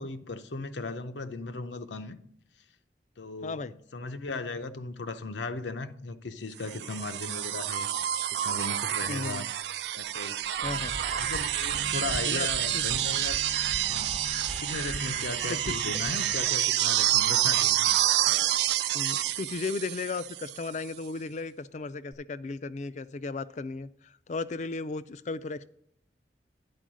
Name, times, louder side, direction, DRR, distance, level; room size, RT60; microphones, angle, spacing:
voice 1, 0.0-2.2 3.2-3.6 3.9-7.9 8.3-9.5 9.9-10.4 11.2-13.4 13.9-14.2 14.6-18.0, left 3 dB, 85° left, 0.7 m, -37 dB
voice 2, 3.4-3.7 9.1-9.5 10.6-11.0 12.2-12.5 12.7-12.8 15.4-15.7 18.9-25.7, left 3 dB, 40° left, 0.4 m, -35 dB
sound 1, 6.7-20.7 22.1-22.2, right 13 dB, 70° right, 0.3 m, -28 dB
sound 2, 10.6-16.5, right 3 dB, 35° right, 0.7 m, -37 dB
10.5 x 4.6 x 6.2 m
head